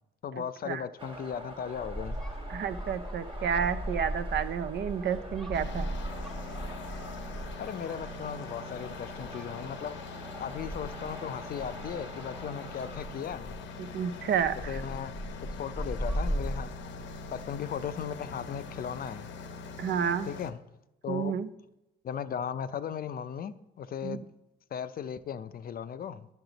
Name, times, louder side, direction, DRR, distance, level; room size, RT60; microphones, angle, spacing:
voice 1, 0.2-2.2 7.6-10.0 10.4-13.6 14.6-15.1 15.6-16.7 17.3-19.3 20.3-20.6 21.0-21.4 22.0-24.2 24.7-26.3, left 8 dB, 50° left, 0.5 m, -37 dB
sound 1, 1.0-15.8, right 1 dB, 25° right, 1.2 m, -47 dB
sound 2, 1.7-19.1, equal, 5° left, 0.8 m, -39 dB
voice 2, 2.5-5.9 13.8-14.8 19.8-20.3 21.1-21.5 24.0-24.2, right 7 dB, 60° right, 0.5 m, -30 dB
sound 3, 5.5-20.5, left 4 dB, 70° left, 0.8 m, -43 dB
10.5 x 6.0 x 3.9 m
cardioid pair, 90°, 20 cm